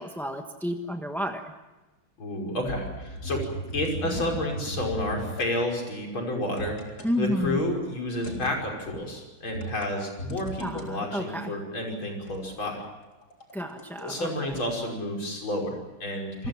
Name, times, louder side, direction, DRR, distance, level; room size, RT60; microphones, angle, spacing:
voice 1, 0.0-1.5 4.1-4.2 7.0-7.6 10.6-11.5 13.5-14.6, left 1 dB, ahead, 4 dB, 0.8 m, -31 dB
voice 2, 2.2-3.4 3.7-12.8 14.0-16.5, left 1 dB, 70° left, 1 dB, 6.4 m, -30 dB
sound 1, 2.6-5.5 6.6-7.1 8.2-8.7 9.5-10.8 12.3-14.2 14.5-14.6, right 1 dB, 45° left, 4.1 m, -37 dB
28.0 x 21.5 x 7.4 m, 1.2 s
omnidirectional pair, 2.3 m